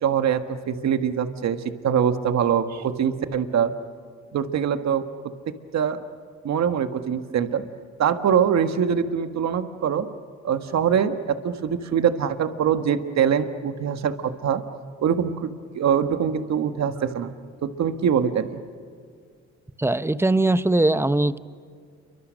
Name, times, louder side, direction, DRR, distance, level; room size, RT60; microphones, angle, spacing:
voice 1, 0.0-3.7 4.3-5.0 5.7-6.0 6.4-7.6 8.0-10.1 10.4-14.6 15.0-15.5 15.7-17.3 17.6-18.6, right 8 dB, 65° right, 8 dB, 1.6 m, -23 dB
voice 2, 19.8-21.4, right 2 dB, 10° right, 13 dB, 1.0 m, -20 dB
29.5 x 24.0 x 6.5 m, 2.1 s
cardioid pair, 90°, 30 cm